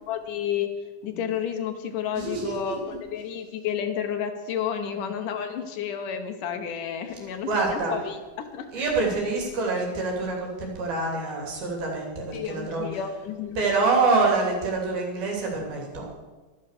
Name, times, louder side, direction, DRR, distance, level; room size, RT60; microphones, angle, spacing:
voice 1, 0.1-0.7 1.0-8.8 12.3-13.6, left 8 dB, 70° left, 6 dB, 2.4 m, -31 dB
voice 2, 2.1-2.8 4.7-5.1 7.4-8.0 8.7-12.9 13.6-16.1, right 3 dB, 80° right, -1 dB, 4.9 m, -26 dB
12.5 x 11.0 x 6.7 m, 1.2 s
omnidirectional pair, 4.2 m